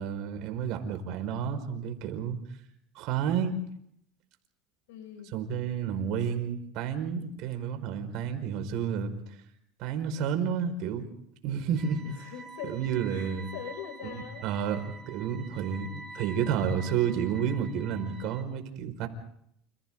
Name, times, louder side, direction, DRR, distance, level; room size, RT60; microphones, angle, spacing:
voice 1, 0.0-2.4 3.0-3.5 5.3-9.4 9.8-11.1 11.4-12.0 12.6-13.5 14.0-19.1, right 8 dB, 60° right, 7 dB, 5.1 m, -31 dB
voice 2, 4.9-5.3 12.0-12.8 13.1-14.5, left 9 dB, 90° left, 7 dB, 6.1 m, -42 dB
sound 1, 11.7-18.4, right 3 dB, 20° right, 4.4 m, -47 dB
29.5 x 29.0 x 3.9 m, 0.73 s
supercardioid pair, 125°, 0 cm